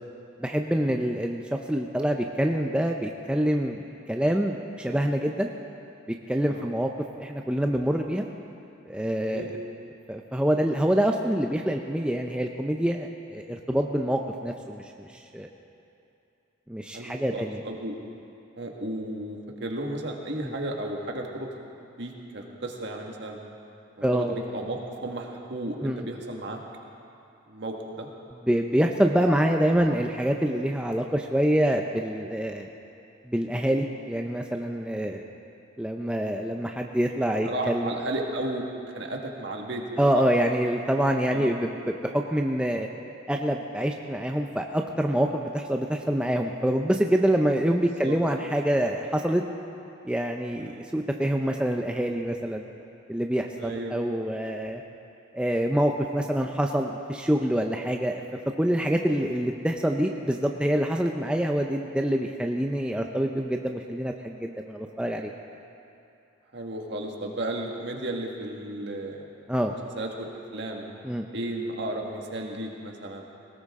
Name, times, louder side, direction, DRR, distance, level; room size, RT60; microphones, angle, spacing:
voice 1, 0.4-1.4 1.7-5.5 6.3-6.9 7.2-8.3 8.9-9.6 10.1-15.5 16.7-17.6 20.4-20.5 24.0-24.3 25.8-26.0 28.5-32.7 33.2-35.2 35.8-37.9 40.0-42.9 43.3-49.4 50.0-52.7 53.1-54.8 55.3-58.2 58.6-65.3 69.5-69.7 71.0-71.3, equal, 5° right, 2 dB, 0.5 m, -26 dB
voice 2, 9.2-9.6 16.9-18.0 18.6-21.5 22.0-23.4 24.0-26.6 27.5-28.1 37.4-38.6 38.9-40.2 41.3-41.5 48.0-48.2 50.5-50.8 53.6-54.0 59.2-59.4 66.5-69.3 69.7-70.9 71.3-73.3, right 1 dB, 60° right, 1 dB, 1.7 m, -34 dB
19.5 x 17.5 x 3.7 m, 2.7 s
head